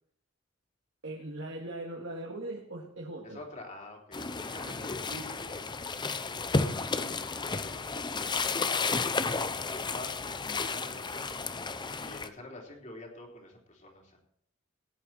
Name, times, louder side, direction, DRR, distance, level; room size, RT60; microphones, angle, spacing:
voice 1, 1.0-3.4 4.6-4.7 5.1-5.2, right 1 dB, 65° right, -2 dB, 2.1 m, -40 dB
voice 2, 3.2-6.8 7.1-9.2 9.6-14.2, left 2 dB, 35° left, 0 dB, 3.5 m, -48 dB
sound 1, 4.1-12.3, left 4 dB, 20° left, 0.6 m, -32 dB
17.0 x 10.5 x 4.4 m, 0.68 s
head